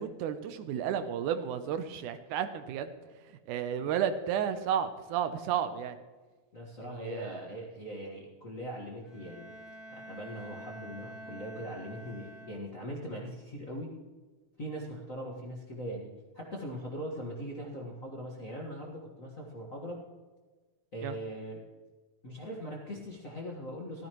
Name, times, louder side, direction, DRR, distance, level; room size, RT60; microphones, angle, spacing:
voice 1, 0.0-2.9 3.5-6.0 6.9-7.4 21.0-21.2, right 8 dB, 80° right, 10 dB, 2.1 m, -32 dB
voice 2, 6.5-9.5 9.9-13.9 14.6-20.0 20.9-21.6 22.2-24.1, equal, 40° left, -3 dB, 1.2 m, -41 dB
Bowed string instrument, 9.0-13.0, right 1 dB, ahead, 1.9 m, -48 dB
14.5 x 13.5 x 3.0 m, 1.3 s
omnidirectional pair, 3.7 m